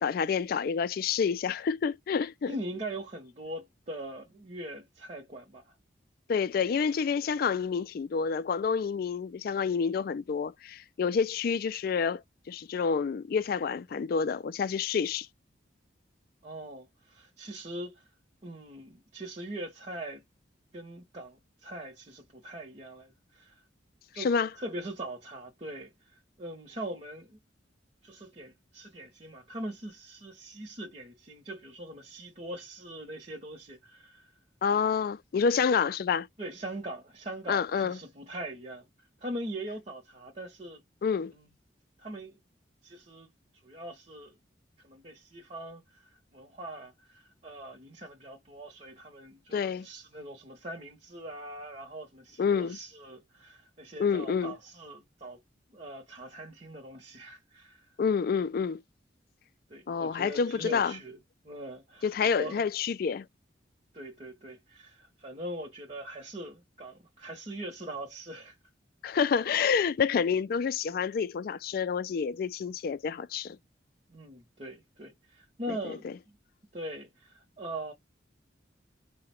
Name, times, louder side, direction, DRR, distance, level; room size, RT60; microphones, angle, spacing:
voice 1, 0.0-2.5 6.3-12.2 12.5-15.3 24.2-24.5 34.6-36.3 37.5-38.0 41.0-41.3 49.5-49.9 52.4-52.8 54.0-54.5 58.0-58.8 59.9-60.9 62.0-63.3 69.0-73.6 75.7-76.1, left 6 dB, 50° left, 0.3 m, -28 dB
voice 2, 2.5-5.8 16.4-18.1 18.4-20.2 20.7-23.6 24.1-24.3 24.6-27.4 28.0-34.3 36.4-38.9 39.2-40.8 41.3-41.5 42.0-42.4 42.8-43.3 43.6-44.3 44.8-55.4 55.7-57.9 59.7-61.2 61.4-62.6 63.9-68.6 74.1-76.4 76.7-77.9, right 1 dB, 35° right, 0.8 m, -42 dB
4.7 x 2.1 x 4.3 m
head